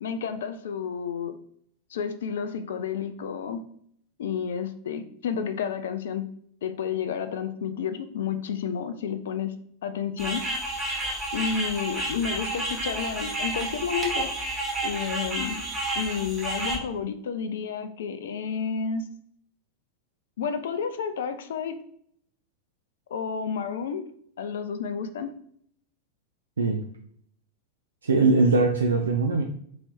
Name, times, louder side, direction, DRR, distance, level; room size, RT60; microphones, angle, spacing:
voice 1, 0.0-1.4 1.9-3.6 4.2-6.3 6.6-9.5 9.8-10.5 11.3-14.3 14.8-15.6 15.9-19.0 20.4-21.8 23.1-24.0 24.4-25.3, left 6 dB, 60° left, 9 dB, 0.4 m, -30 dB
sound 1, 10.2-16.8, right 1 dB, 20° right, 1.3 m, -30 dB
voice 2, 28.0-29.4, right 3 dB, 70° right, 2 dB, 0.4 m, -21 dB
3.1 x 2.8 x 4.3 m, 0.65 s
figure-of-eight pair, 90°, 0 cm